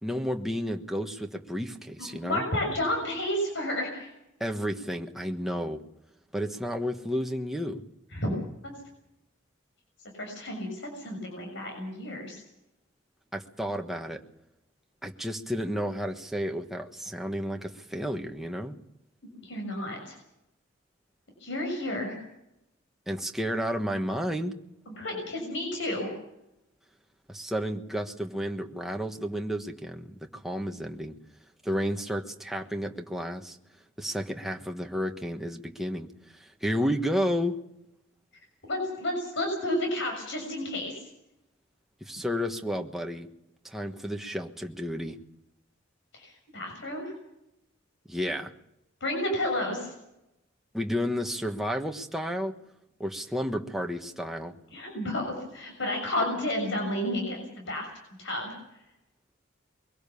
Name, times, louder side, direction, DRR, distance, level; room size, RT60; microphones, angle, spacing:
voice 1, 0.0-2.4 4.4-5.8 6.3-7.8 13.3-14.2 15.0-18.8 23.1-24.6 27.3-31.1 31.6-33.6 34.0-36.1 36.4-37.6 42.0-43.3 43.6-45.2 48.1-48.5 50.7-52.5 53.0-54.5, equal, ahead, 3 dB, 1.4 m, -31 dB
voice 2, 2.2-4.1 8.1-8.3 10.1-12.4 19.4-20.1 21.4-22.2 24.9-26.1 38.7-41.0 46.1-47.1 49.0-49.9 54.7-57.9 58.2-58.5, left 1 dB, 65° left, 2 dB, 6.6 m, -31 dB
23.0 x 17.5 x 7.1 m, 0.82 s
head